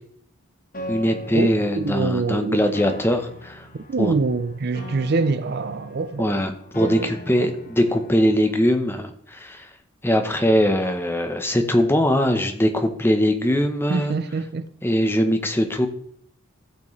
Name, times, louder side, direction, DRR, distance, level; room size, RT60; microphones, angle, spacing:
Piano, 0.7-8.7, equal, 40° left, 1.4 m, -40 dB
voice 1, 0.9-3.7 4.0-4.1 6.2-9.7 10.0-14.1 14.8-15.9, equal, 10° left, 0.8 m, -21 dB
voice 2, 1.8-2.6 3.7-6.5 6.8-7.1 7.4-7.5 13.9-14.7, right 3 dB, 45° right, 0.4 m, -25 dB
14.5 x 6.1 x 3.2 m
head